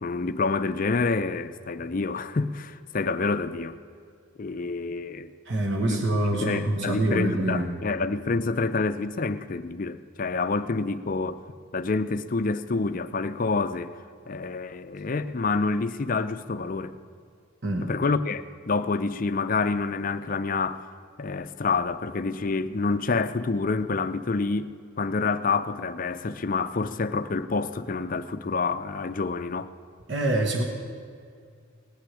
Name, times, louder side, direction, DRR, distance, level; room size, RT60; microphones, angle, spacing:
voice 1, 0.0-3.8 4.4-5.3 5.9-6.0 6.3-11.4 11.7-14.0 14.3-16.9 17.8-20.9 21.2-29.7, left 4 dB, 40° left, 0.5 m, -27 dB
voice 2, 5.5-7.7 17.6-17.9 30.1-30.6, right 1 dB, 55° right, 1.3 m, -25 dB
18.0 x 6.4 x 9.9 m
head